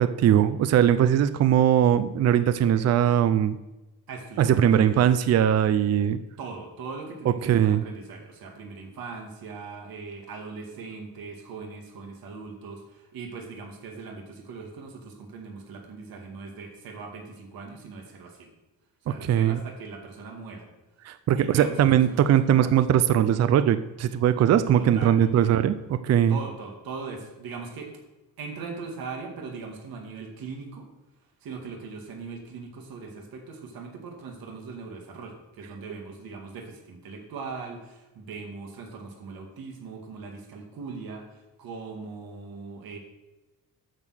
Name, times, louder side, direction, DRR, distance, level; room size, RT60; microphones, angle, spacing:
voice 1, 0.0-3.6 4.4-6.2 7.5-7.8 19.2-19.6 21.0-26.4, right 10 dB, 45° right, 12 dB, 0.5 m, -20 dB
voice 2, 4.1-5.1 6.4-18.5 19.0-20.7 21.3-22.7 24.7-25.5 26.3-27.9 28.4-30.9 31.4-43.0, right 4 dB, 75° right, 2 dB, 2.1 m, -40 dB
8.8 x 6.5 x 6.4 m, 1.0 s
cardioid pair, 145°, 36 cm